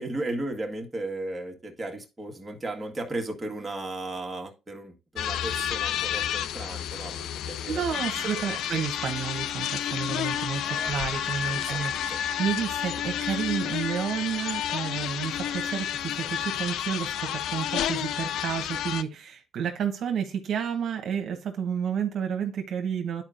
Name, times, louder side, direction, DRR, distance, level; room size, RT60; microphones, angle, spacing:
voice 1, 0.0-8.6 10.6-11.0 11.5-12.2, right 2 dB, 20° right, 1.6 m, -36 dB
sound 1, 5.2-19.0, left 10 dB, 85° left, 0.4 m, -30 dB
voice 2, 7.7-23.2, right 7 dB, 65° right, 1.0 m, -31 dB
11.0 x 4.5 x 2.5 m
cardioid pair, 90°, 0 cm